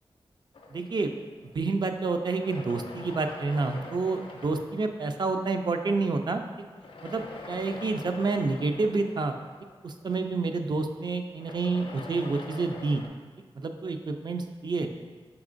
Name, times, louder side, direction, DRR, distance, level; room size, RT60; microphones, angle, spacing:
sound 1, 0.5-1.8 2.3-5.4 6.7-10.2 11.3-13.1, left 3 dB, 65° left, 0.5 m, -44 dB
voice 1, 0.7-1.1 1.5-6.4 7.0-9.3 9.8-13.0 13.6-14.9, right 3 dB, 50° right, 6 dB, 0.4 m, -29 dB
5.9 x 3.6 x 2.5 m, 1.5 s
wide cardioid pair, 90°, 10 cm